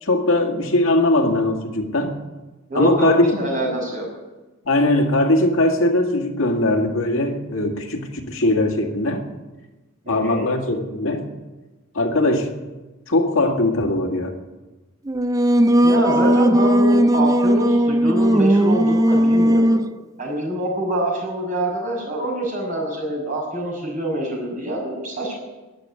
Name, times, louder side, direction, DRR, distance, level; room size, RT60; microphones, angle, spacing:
voice 1, 0.0-2.2 2.7-3.4 4.7-9.2 10.1-11.3 11.9-12.5 13.1-14.3, left 1 dB, 70° left, 3 dB, 2.1 m, -20 dB
voice 2, 2.7-4.1 10.0-10.5 15.8-19.8 20.2-25.4, right 1 dB, 40° right, -1 dB, 6.1 m, -25 dB
Singing, 15.1-19.9, right 1 dB, 15° right, 0.4 m, -17 dB
13.0 x 10.5 x 9.7 m, 1.2 s
head